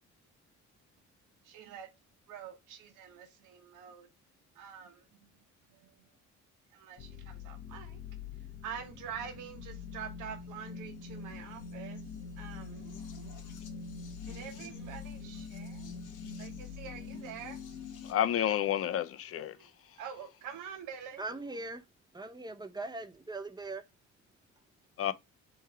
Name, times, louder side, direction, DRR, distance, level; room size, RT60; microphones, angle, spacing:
voice 1, 1.4-1.9 2.3-4.1 4.6-5.0 5.8-5.9 6.7-8.0 8.6-12.0 12.4-13.4 14.3-15.9 16.4-17.9 20.0-21.4, right 8 dB, 85° right, 1.0 m, -46 dB
sound 1, 7.0-18.1, left 5 dB, 85° left, 1.0 m, -44 dB
voice 2, 18.0-19.5 25.0-25.1, left 10 dB, 50° left, 0.5 m, -30 dB
voice 3, 21.2-21.8 22.1-23.8, right 2 dB, 15° right, 0.6 m, -40 dB
3.5 x 3.2 x 4.4 m
cardioid pair, 90°, 30 cm